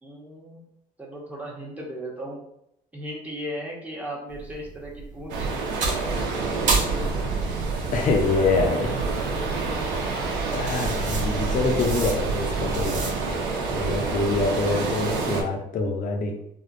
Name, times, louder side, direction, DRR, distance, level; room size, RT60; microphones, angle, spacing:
voice 1, 0.0-0.6 1.0-2.4 2.9-7.0 7.4-8.6, equal, 10° right, -4 dB, 1.0 m, -37 dB
sound 1, 4.3-13.4, right 3 dB, 50° right, 0.8 m, -33 dB
sound 2, 5.3-15.4, right 4 dB, 90° right, 0.7 m, -27 dB
voice 2, 7.9-9.0 10.1-10.2 10.5-13.4 13.7-16.3, left 3 dB, 50° left, 2 dB, 0.7 m, -25 dB
3.4 x 2.3 x 2.6 m, 0.76 s
cardioid pair, 110°, 17 cm